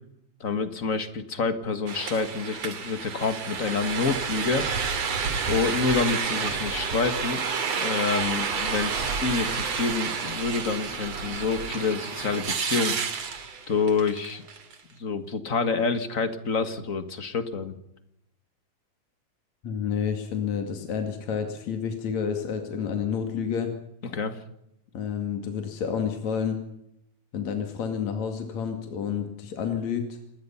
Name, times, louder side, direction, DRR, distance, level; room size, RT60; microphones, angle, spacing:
voice 1, 0.4-4.6 5.5-7.4 7.8-13.0 13.7-14.4 15.0-17.7 24.0-24.4, left 4 dB, 35° left, 10 dB, 1.7 m, -27 dB
sound 1, 1.9-14.7, right 5 dB, 60° right, 3.6 m, -30 dB
voice 2, 19.6-23.7 24.9-26.6 27.3-30.1, left 7 dB, 70° left, 5 dB, 3.6 m, -29 dB
28.0 x 20.5 x 5.7 m, 0.80 s
omnidirectional pair, 3.3 m